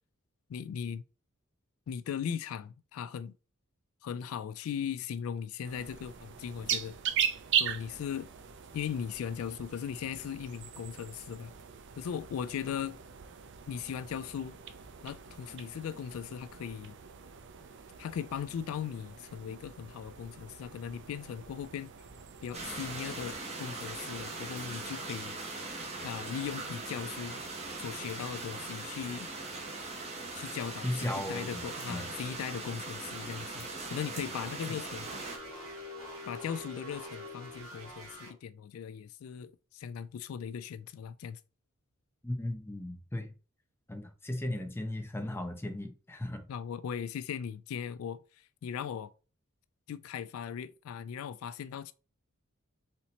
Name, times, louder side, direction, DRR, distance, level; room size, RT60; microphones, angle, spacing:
voice 1, 0.5-1.0 1.9-3.3 4.0-6.9 7.6-8.3 8.7-11.5 12.0-13.0 13.7-14.6 15.0-16.9 18.0-21.9 22.4-25.4 26.0-27.4 27.8-29.3 30.3-35.1 36.3-41.4 44.5-44.6 46.5-49.1 49.9-51.9, left 8 dB, 75° left, 0.3 m, -38 dB
sound 1, 5.6-23.3, right 8 dB, 55° right, 0.5 m, -39 dB
sound 2, 22.5-35.4, right 3 dB, 30° right, 1.2 m, -40 dB
voice 2, 30.8-31.6 31.9-32.1 42.2-43.3 43.9-46.5, left 1 dB, 10° left, 0.7 m, -36 dB
sound 3, 35.0-38.3, left 1 dB, 80° right, 2.0 m, -44 dB
4.2 x 2.9 x 4.1 m
head